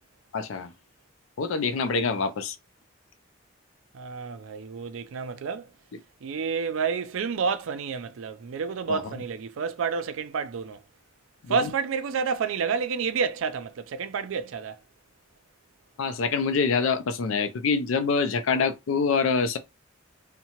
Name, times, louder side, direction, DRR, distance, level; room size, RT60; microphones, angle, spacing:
voice 1, 0.3-0.7 1.4-2.6 5.9-6.0 8.9-9.1 11.5-11.7 16.0-19.6, left 5 dB, 80° left, 0.4 m, -25 dB
voice 2, 3.9-5.7 6.2-10.8 11.5-14.8, right 6 dB, 80° right, 0.4 m, -29 dB
2.7 x 2.1 x 2.9 m
head